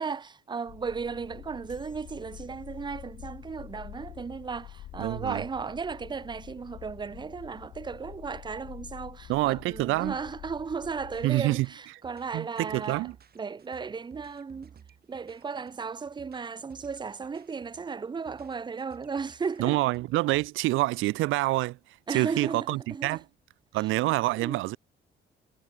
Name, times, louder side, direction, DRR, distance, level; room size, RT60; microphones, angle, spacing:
voice 1, 0.0-13.1 13.4-14.7 15.1-19.8 22.1-23.2 24.4-24.6, right 5 dB, 20° right, 0.5 m, -35 dB
sound 1, 0.7-11.3, left 13 dB, 70° left, 0.8 m, -47 dB
sound 2, 1.7-3.2, left 5 dB, 40° left, 7.5 m, -63 dB
voice 2, 5.0-5.4 9.3-10.2 11.2-11.7 12.3-13.2 19.6-21.8 22.1-23.2 23.7-24.8, right 19 dB, 85° right, 0.4 m, -27 dB
sound 3, 11.0-20.5, right 7 dB, 50° right, 4.6 m, -56 dB
cardioid pair, 90°, 20 cm